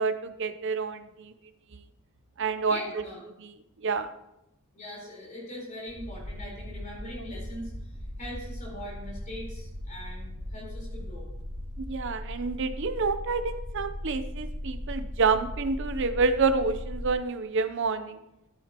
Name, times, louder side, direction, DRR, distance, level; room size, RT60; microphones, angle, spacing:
voice 1, 0.0-1.3 1.7-1.8 2.4-3.0 3.4-3.5 3.8-4.1 7.2-7.3 11.8-18.2, right 4 dB, 55° right, 10 dB, 0.7 m, -28 dB
voice 2, 2.7-3.3 4.7-7.7 8.2-11.3, equal, 35° left, -3 dB, 4.2 m, -41 dB
sound 1, 5.9-17.1, left 1 dB, 80° right, 2.7 m, -38 dB
12.5 x 9.9 x 3.0 m, 0.86 s
head